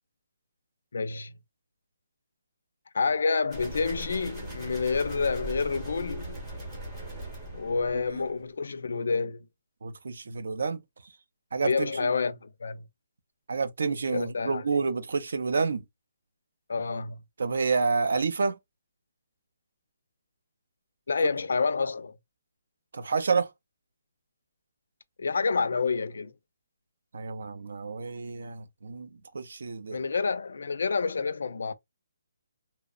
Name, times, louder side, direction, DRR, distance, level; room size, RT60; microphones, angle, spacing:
voice 1, 0.9-1.3 2.9-6.4 7.5-9.4 11.6-12.8 14.1-14.8 16.7-17.2 21.1-22.1 25.2-26.3 29.9-31.7, left 4 dB, 65° left, 0.4 m, -28 dB
sound 1, 3.5-8.4, right 2 dB, 10° right, 0.8 m, -39 dB
voice 2, 9.8-10.8 11.5-12.1 13.5-15.8 17.4-18.6 22.9-23.5 27.1-29.1 29.3-30.0, right 4 dB, 65° right, 0.5 m, -29 dB
2.8 x 2.0 x 2.3 m
hypercardioid pair, 175°, 0 cm